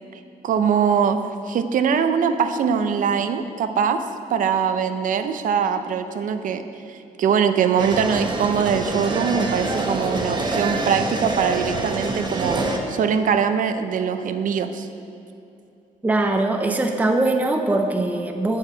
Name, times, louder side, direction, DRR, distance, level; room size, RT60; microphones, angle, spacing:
voice 1, 0.4-1.2 1.5-4.0 4.3-6.6 6.9-12.6 12.9-14.9, right 7 dB, 65° right, 9 dB, 0.6 m, -22 dB
sound 1, 7.8-12.8, right 2 dB, 30° right, 0.9 m, -26 dB
voice 2, 16.0-18.6, right 2 dB, 10° right, 4 dB, 0.5 m, -21 dB
9.6 x 4.8 x 7.5 m, 2.6 s
wide cardioid pair, 150°, 15 cm